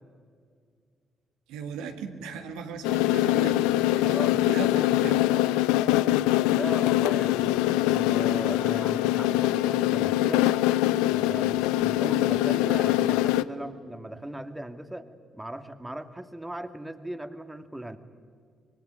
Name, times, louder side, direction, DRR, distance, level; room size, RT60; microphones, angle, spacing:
voice 1, 1.5-4.2 4.5-5.2, right 6 dB, 70° right, 5 dB, 2.0 m, -37 dB
sound 1, 2.8-13.4, left 15 dB, 75° left, 0.6 m, -23 dB
voice 2, 4.0-4.4 6.4-10.5 11.1-15.1 15.3-18.0, right 1 dB, 10° right, 9 dB, 2.1 m, -38 dB
25.0 x 22.0 x 9.7 m, 2.1 s
figure-of-eight pair, 40°, 0 cm